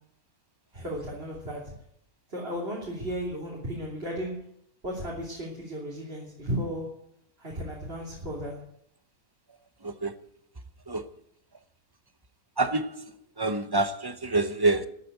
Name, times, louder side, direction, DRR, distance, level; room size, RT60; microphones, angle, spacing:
voice 1, 0.7-1.7 2.3-4.4 4.8-6.9 7.4-8.6, equal, 40° right, 3.5 m, -34 dB
voice 2, 9.8-10.1 10.9-11.0 12.6-13.1 13.4-14.9, right 2 dB, 20° right, 0.6 m, -26 dB
14.0 x 8.6 x 9.3 m
omnidirectional pair, 1.5 m